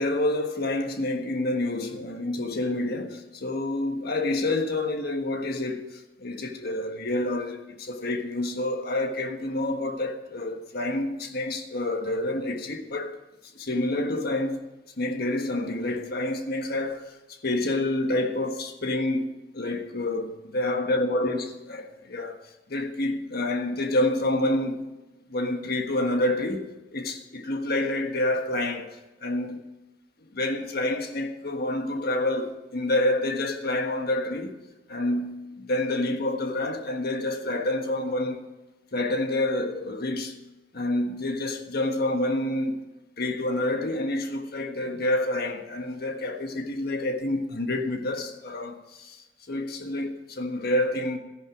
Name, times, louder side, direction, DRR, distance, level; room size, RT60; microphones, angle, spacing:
voice 1, 0.0-13.1 13.5-14.6 15.0-22.4 22.7-24.9 25.3-28.9 29.2-29.6 30.3-34.5 34.9-38.4 38.9-40.3 40.7-42.8 43.2-51.2, left 1 dB, 55° left, 1.5 m, -28 dB
13.5 x 11.0 x 5.0 m
head